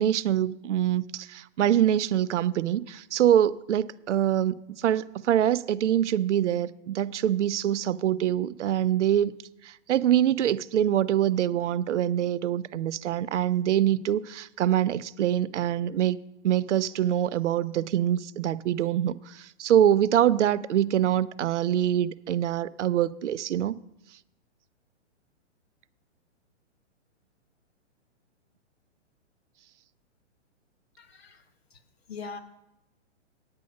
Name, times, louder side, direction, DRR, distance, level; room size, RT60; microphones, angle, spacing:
voice 1, 0.0-9.3 9.6-16.2 16.4-23.8, right 11 dB, 75° right, 0.5 m, -24 dB
voice 2, 31.0-31.4 32.1-32.4, left 5 dB, 55° left, 1.1 m, -40 dB
9.7 x 8.4 x 5.2 m
hypercardioid pair, 175°, 36 cm